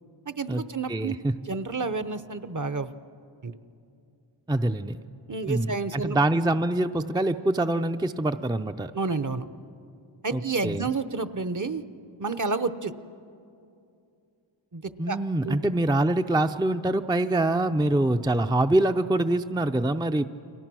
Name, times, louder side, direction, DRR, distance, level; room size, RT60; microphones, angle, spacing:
voice 1, 0.3-1.2 1.5-2.9 3.4-3.6 5.3-6.2 8.9-9.5 10.2-11.8 12.2-12.9 14.7-15.2 15.4-15.6, right 4 dB, 40° right, 12 dB, 0.9 m, -30 dB
voice 2, 0.9-1.3 4.5-5.0 5.5-8.9 10.3-10.9 15.0-20.2, right 1 dB, 10° right, 7 dB, 0.5 m, -25 dB
29.5 x 24.0 x 6.2 m, 2.6 s
wide cardioid pair, 65°, 48 cm